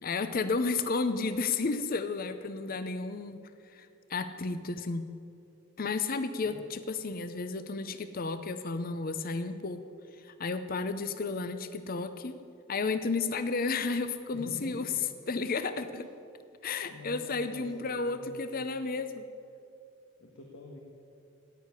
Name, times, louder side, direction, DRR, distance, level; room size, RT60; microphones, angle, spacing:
voice 1, 0.0-3.4 3.7-5.1 5.8-9.8 10.2-12.3 12.7-14.9 15.3-15.9 16.6-19.2, left 4 dB, 45° left, 10 dB, 0.6 m, -32 dB
voice 2, 14.3-14.9 15.9-16.1 16.5-17.7 18.0-18.5 20.2-20.8, left 2 dB, 80° left, 0 dB, 1.7 m, -46 dB
17.5 x 6.6 x 9.8 m, 2.6 s
head